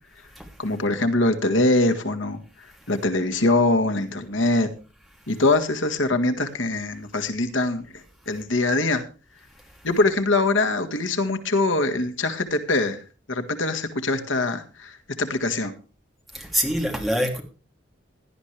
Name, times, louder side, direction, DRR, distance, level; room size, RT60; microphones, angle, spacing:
voice 1, 0.6-4.7 5.3-9.0 9.8-13.0 13.3-15.7, left 2 dB, 85° left, 1.7 m, -23 dB
voice 2, 16.3-17.4, equal, ahead, 2.8 m, -25 dB
17.0 x 12.0 x 3.3 m
head